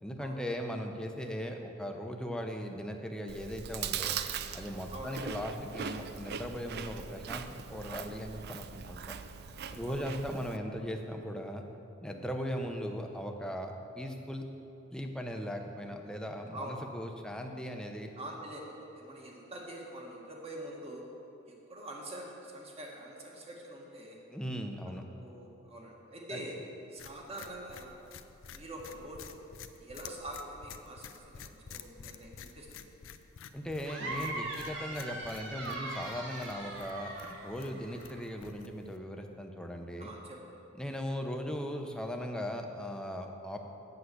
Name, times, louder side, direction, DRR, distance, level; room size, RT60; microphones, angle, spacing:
voice 1, 0.0-4.2 4.5-9.1 9.7-11.6 12.0-14.4 14.9-18.1 24.3-25.0 26.3-26.4 33.5-40.1 40.8-43.6, equal, 5° left, 3 dB, 0.7 m, -38 dB
Chewing mastication, 3.3-10.6, right 7 dB, 55° right, 0.4 m, -40 dB
voice 2, 18.2-21.1 21.5-24.2 24.8-26.5 26.9-28.0 28.5-29.4 29.8-32.8 40.0-40.6, right 1 dB, 30° right, -1 dB, 1.5 m, -45 dB
sound 1, 27.0-39.0, left 7 dB, 85° left, 0.5 m, -51 dB
sound 2, 33.8-38.2, right 2 dB, 70° right, 1.6 m, -40 dB
8.3 x 6.5 x 7.9 m, 2.7 s
head